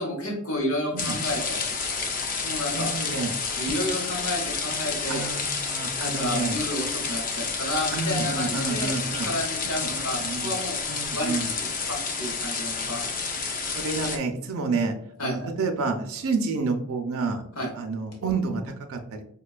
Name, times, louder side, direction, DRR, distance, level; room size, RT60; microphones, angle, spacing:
voice 1, 0.0-2.0 2.4-2.9 3.6-5.3 6.0-8.9 9.2-10.8 11.1-13.1 15.2-15.5 17.6-17.7, left 1 dB, 80° left, -1 dB, 0.9 m, -31 dB
sound 1, 1.0-14.2, left 4 dB, 40° left, 0.4 m, -30 dB
voice 2, 2.7-3.3 5.1-6.6 7.9-9.3 9.7-10.6 10.9-11.5 13.7-14.9 15.2-17.4 17.8-19.0, right 4 dB, 85° right, 4 dB, 0.4 m, -29 dB
5.2 x 2.2 x 2.3 m, 0.68 s
head